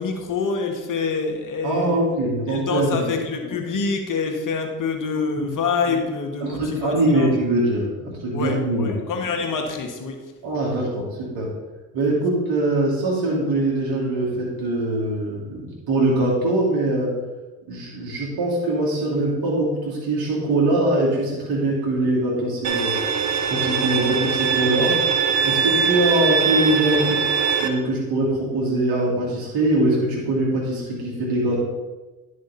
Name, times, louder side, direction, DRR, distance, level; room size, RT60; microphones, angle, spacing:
voice 1, 0.0-2.0 2.5-7.3 8.3-10.2, left 4 dB, 50° left, 4 dB, 1.8 m, -26 dB
voice 2, 1.6-3.1 5.4-5.5 6.4-8.9 10.4-11.5 11.9-17.2 17.7-23.0 23.5-25.0 25.4-27.2 27.6-31.6, right 1 dB, 65° right, -4 dB, 2.8 m, -22 dB
Bowed string instrument, 22.6-27.7, right 7 dB, 45° right, 1.1 m, -22 dB
10.5 x 6.4 x 4.2 m, 1.2 s
hypercardioid pair, 65°, 39 cm